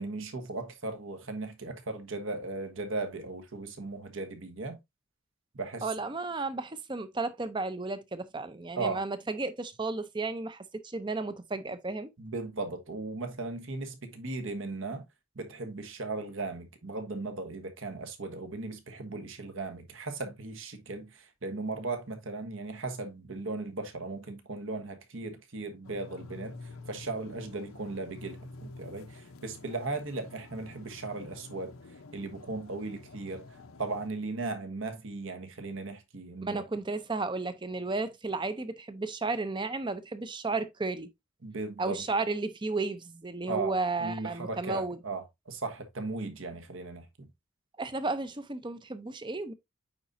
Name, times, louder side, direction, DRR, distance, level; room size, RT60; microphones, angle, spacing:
voice 1, 0.0-4.8 5.5-5.9 8.8-9.0 12.2-15.0 15.3-31.7 32.1-33.5 33.8-36.6 41.4-42.0 43.5-47.3, right 3 dB, 65° right, 1.3 m, -37 dB
voice 2, 5.8-12.1 36.4-41.1 41.8-45.0 47.8-49.5, right 3 dB, 20° right, 0.5 m, -33 dB
sound 1, 25.8-34.1, left 3 dB, 75° left, 0.8 m, -49 dB
8.9 x 4.1 x 2.6 m
head